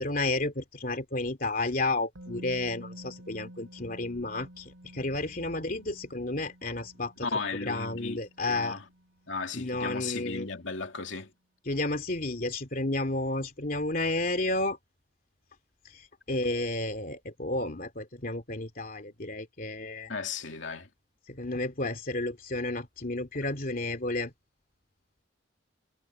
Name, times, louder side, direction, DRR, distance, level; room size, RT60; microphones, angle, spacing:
voice 1, 0.0-7.3 7.7-8.8 9.5-10.5 11.7-14.8 16.3-20.1 21.4-24.3, left 2 dB, 45° left, 2.7 m, -31 dB
Musical instrument, 2.1-10.0 10.3-10.5, equal, 90° right, 7.7 m, -51 dB
voice 2, 7.2-8.9 9.3-11.3 20.1-20.9, left 4 dB, 70° left, 2.6 m, -35 dB
head